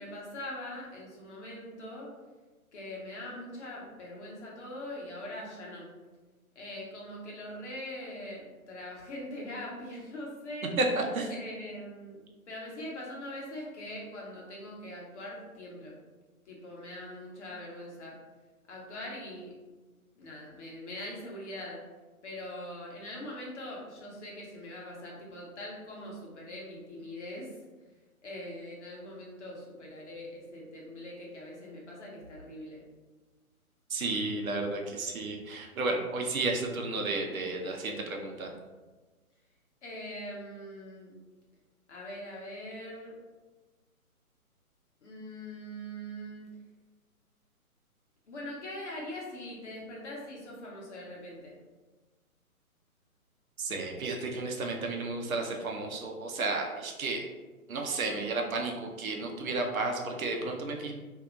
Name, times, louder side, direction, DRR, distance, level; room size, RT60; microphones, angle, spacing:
voice 1, 0.0-2.1 2.7-5.9 6.5-10.7 11.3-15.9 16.5-18.2 18.7-19.5 20.1-21.8 22.2-27.6 28.2-32.8 39.8-41.2 41.9-43.2 45.0-46.5 48.3-51.6, left 1 dB, 50° left, -3 dB, 1.1 m, -42 dB
voice 2, 10.8-11.3 33.9-38.5 53.6-57.2 57.7-60.9, right 3 dB, 70° right, 1 dB, 0.7 m, -32 dB
2.8 x 2.3 x 3.7 m, 1.3 s
hypercardioid pair, 145°, 44 cm